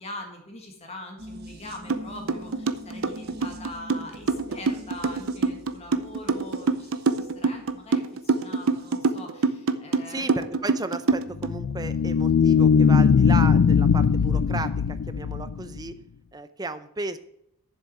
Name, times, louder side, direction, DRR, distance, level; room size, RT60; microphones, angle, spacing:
voice 1, 0.0-10.3, left 1 dB, 30° left, 2 dB, 1.7 m, -42 dB
sound 1, 1.2-9.1 9.4-9.5, equal, 45° right, 1.4 m, -45 dB
sound 2, 1.9-2.0 2.3-11.5, right 4 dB, 65° right, 0.7 m, -25 dB
voice 2, 10.1-15.9 16.3-17.2, right 3 dB, 15° right, 11 dB, 0.6 m, -34 dB
sound 3, 11.4-15.9, left 6 dB, 60° left, 0.3 m, -20 dB
7.3 x 7.2 x 7.8 m, 0.75 s
head